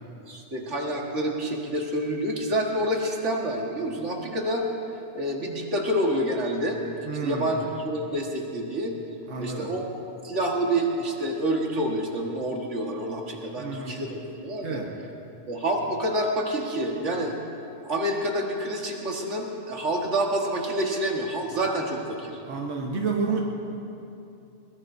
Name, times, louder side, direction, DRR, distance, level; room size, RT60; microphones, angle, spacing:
voice 1, 0.3-4.7 5.1-6.8 7.2-8.9 9.4-9.9 10.2-14.8 15.5-17.4 17.8-22.4, right 1 dB, 90° right, 0 dB, 2.0 m, -28 dB
voice 2, 7.0-7.5 9.3-9.7 13.6-14.0 14.6-15.0 22.4-23.4, right 4 dB, 70° right, 0 dB, 1.4 m, -30 dB
22.0 x 20.5 x 2.7 m, 2.8 s
omnidirectional pair, 1.2 m